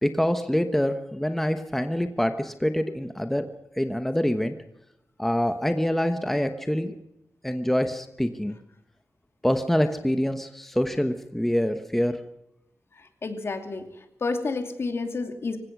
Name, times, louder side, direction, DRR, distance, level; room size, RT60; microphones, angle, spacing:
voice 1, 0.0-3.5 3.8-4.5 5.2-6.9 7.4-8.6 9.4-12.2, equal, 5° left, 7 dB, 1.1 m, -25 dB
voice 2, 13.0-13.8 14.2-15.6, left 3 dB, 50° left, 6 dB, 2.7 m, -30 dB
25.5 x 16.5 x 6.1 m, 0.85 s
wide cardioid pair, 135°, 5 cm